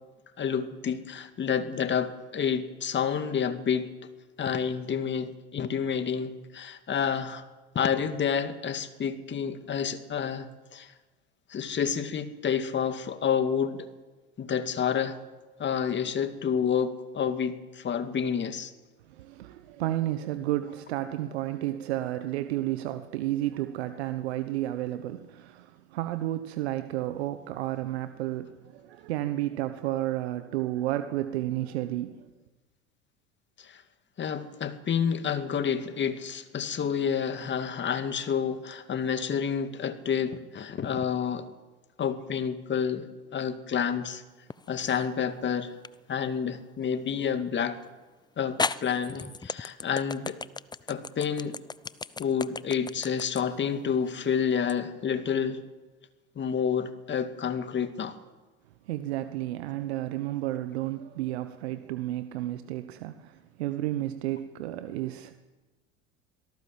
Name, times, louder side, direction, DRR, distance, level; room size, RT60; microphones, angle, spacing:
voice 1, 0.4-3.9 4.4-7.4 7.7-10.9 11.5-13.9 14.4-15.2 15.6-18.7 33.6-33.8 34.2-41.5 42.0-44.2 44.7-45.7 46.1-47.8 48.4-50.4 50.9-51.6 52.2-55.6 56.4-58.2, left 7 dB, 35° left, 2.2 m, -29 dB
voice 2, 19.1-32.3 58.9-65.3, right 14 dB, 75° right, 1.1 m, -32 dB
sound 1, 44.5-45.1 45.8-46.0 47.8-47.9 48.6-54.8, left 4 dB, 15° left, 0.7 m, -35 dB
24.5 x 17.5 x 7.6 m
hypercardioid pair, 75°, 32 cm